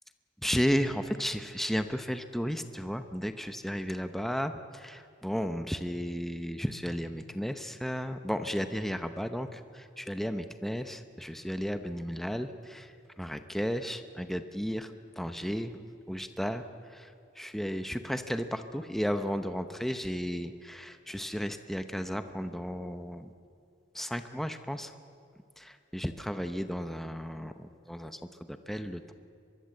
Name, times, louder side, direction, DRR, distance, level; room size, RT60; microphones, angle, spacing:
voice 1, 0.4-12.9 13.2-15.8 16.1-23.3 23.9-24.9 25.6-28.2 28.5-29.1, equal, ahead, 8 dB, 0.7 m, -34 dB
23.5 x 22.5 x 7.8 m, 2.5 s
head